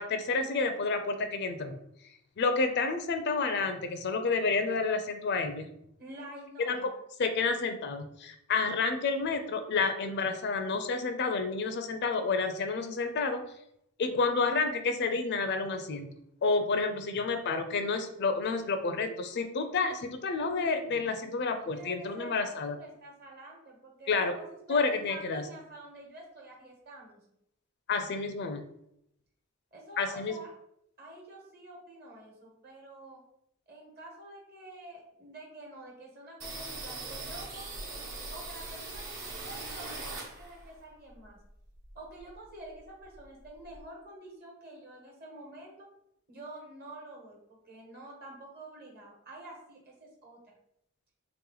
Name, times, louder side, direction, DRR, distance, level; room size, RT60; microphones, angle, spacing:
voice 1, 0.0-1.8 2.4-5.7 6.6-6.9 7.2-13.4 14.0-16.1 16.4-22.8 24.1-24.3 24.7-25.4 27.9-28.6 30.0-30.3, left 4 dB, 50° left, 8 dB, 0.4 m, -30 dB
voice 2, 6.0-7.0 21.6-27.2 29.7-30.5 31.0-33.2 33.7-41.4 41.9-45.9 46.3-50.6, right 1 dB, 50° right, -1 dB, 1.2 m, -48 dB
sound 1, 36.4-40.7 41.1-42.5 42.7-42.8 43.1-43.8, right 3 dB, 70° right, 1.2 m, -41 dB
3.4 x 3.0 x 3.8 m, 0.77 s
head